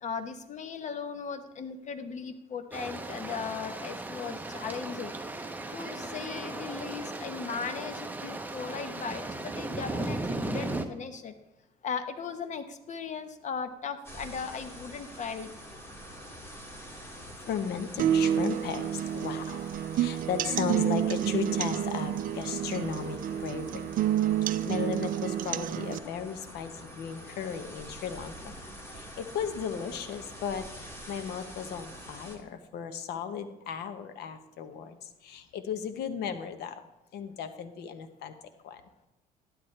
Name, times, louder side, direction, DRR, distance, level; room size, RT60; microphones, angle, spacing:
voice 1, 0.0-5.1 5.7-11.3 11.8-15.5, left 6 dB, 45° left, 9 dB, 1.0 m, -37 dB
sound 1, 2.7-10.8, right 2 dB, 10° right, 0.8 m, -36 dB
sound 2, 14.0-32.4, equal, 15° left, 2.2 m, -46 dB
voice 2, 17.4-23.8 24.6-28.5 28.9-36.8 37.1-38.3 38.6-38.8, left 7 dB, 75° left, 9 dB, 1.0 m, -36 dB
sound 3, 18.0-26.0, right 10 dB, 55° right, 0.5 m, -29 dB
12.0 x 10.5 x 3.3 m, 0.91 s
cardioid pair, 110°, 17 cm